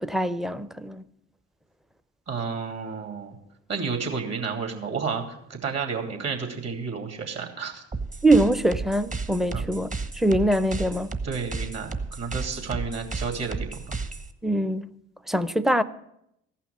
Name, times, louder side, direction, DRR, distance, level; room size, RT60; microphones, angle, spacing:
voice 1, 0.0-1.0 8.2-9.9 10.2-11.1 14.4-14.9 15.3-15.8, right 1 dB, ahead, 0.6 m, -23 dB
voice 2, 2.3-3.4 3.7-7.8 9.5-9.7 11.2-14.0, right 5 dB, 45° right, 2.8 m, -31 dB
sound 1, 7.9-14.3, right 3 dB, 20° right, 1.1 m, -33 dB
14.5 x 5.8 x 8.7 m
hypercardioid pair, 60°, 34 cm